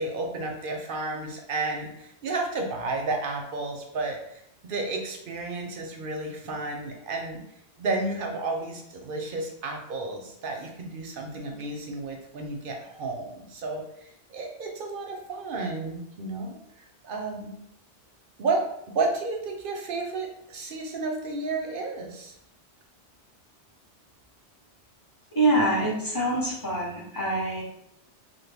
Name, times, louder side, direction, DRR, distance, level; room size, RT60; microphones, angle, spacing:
voice 1, 0.0-7.4 7.8-17.5 18.4-22.3, right 3 dB, 60° right, 2 dB, 0.6 m, -32 dB
voice 2, 25.3-27.6, right 1 dB, 20° left, -5 dB, 0.8 m, -25 dB
3.4 x 2.2 x 3.3 m, 0.78 s
omnidirectional pair, 1.1 m